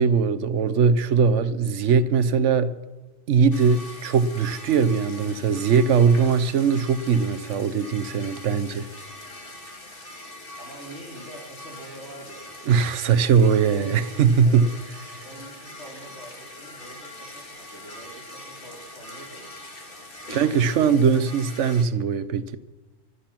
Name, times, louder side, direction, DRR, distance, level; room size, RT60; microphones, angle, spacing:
voice 1, 0.0-2.7 3.3-8.9 12.7-14.7 15.1-15.2 20.3-22.6, right 6 dB, 80° right, 1.1 m, -20 dB
sound 1, 3.5-21.8, left 1 dB, 50° left, 2.3 m, -42 dB
voice 2, 10.6-12.5 13.7-14.7 15.2-19.5, right 1 dB, 70° left, 4.3 m, -44 dB
25.0 x 8.3 x 5.9 m
omnidirectional pair, 1.2 m